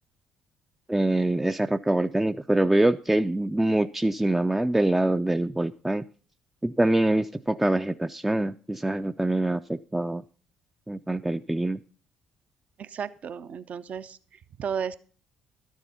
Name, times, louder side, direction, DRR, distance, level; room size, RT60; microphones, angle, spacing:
voice 1, 0.9-6.0 6.6-10.2 10.9-11.8, right 1 dB, 10° right, 9 dB, 0.4 m, -24 dB
voice 2, 12.8-15.0, right 7 dB, 50° right, 14 dB, 0.6 m, -34 dB
12.0 x 7.1 x 5.6 m, 0.41 s
hypercardioid pair, 50°, 3 cm